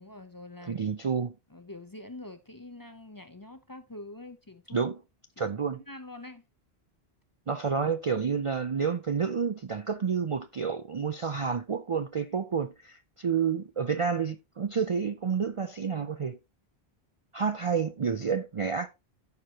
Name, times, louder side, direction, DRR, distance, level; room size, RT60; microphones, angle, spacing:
voice 1, 0.0-0.8 1.5-4.9 5.4-5.5 5.7-6.5, left 2 dB, 25° left, 0.6 m, -45 dB
voice 2, 0.7-1.3 4.7-5.0 5.4-5.8 7.5-16.4 17.3-18.9, right 6 dB, 45° right, 0.4 m, -29 dB
14.0 x 4.8 x 2.9 m
omnidirectional pair, 1.1 m